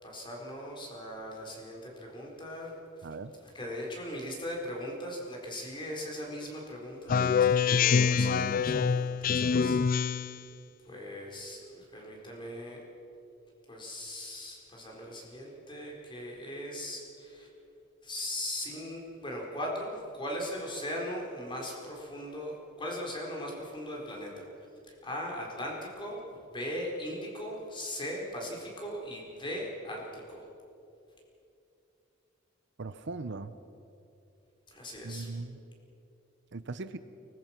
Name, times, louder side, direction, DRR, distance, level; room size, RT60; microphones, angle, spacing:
voice 1, 0.0-3.1 3.5-9.8 10.8-12.8 13.7-17.5 18.0-24.4 24.9-30.5 34.7-35.3, equal, 25° left, -1 dB, 4.5 m, -39 dB
Speech synthesizer, 7.1-10.4, left 6 dB, 45° left, 0.4 m, -25 dB
voice 2, 32.8-33.5 35.0-35.6 36.5-37.0, right 3 dB, 60° right, 12 dB, 0.7 m, -39 dB
24.0 x 20.0 x 6.0 m, 2.8 s
head